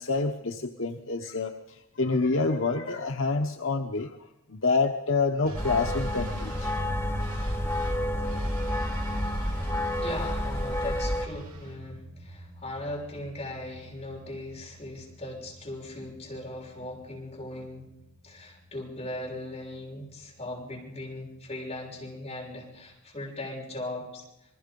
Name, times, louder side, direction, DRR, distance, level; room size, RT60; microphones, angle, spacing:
voice 1, 0.0-4.2 4.5-6.7, left 3 dB, 60° left, 4 dB, 1.0 m, -27 dB
sound 1, 5.4-22.9, right 1 dB, 75° right, 5.0 m, -42 dB
sound 2, 5.5-11.3, left 1 dB, 10° left, 1.8 m, -30 dB
voice 2, 10.0-17.9 18.2-24.3, left 1 dB, 25° left, -3 dB, 6.4 m, -39 dB
28.0 x 21.0 x 5.3 m, 0.91 s
head